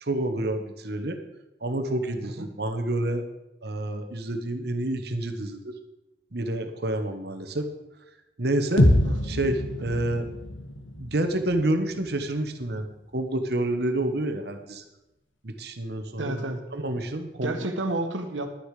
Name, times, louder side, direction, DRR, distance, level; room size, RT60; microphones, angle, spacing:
voice 1, 0.0-1.2 1.6-3.2 3.6-5.8 6.3-7.7 8.4-8.9 9.2-10.3 11.0-14.8 15.4-17.5, right 1 dB, 55° right, 7 dB, 1.2 m, -28 dB
sound 1, 8.8-12.7, left 1 dB, 90° left, 1.6 m, -26 dB
voice 2, 16.2-16.6 17.4-18.5, right 2 dB, 80° right, 6 dB, 1.5 m, -30 dB
11.5 x 10.0 x 4.9 m, 0.96 s
head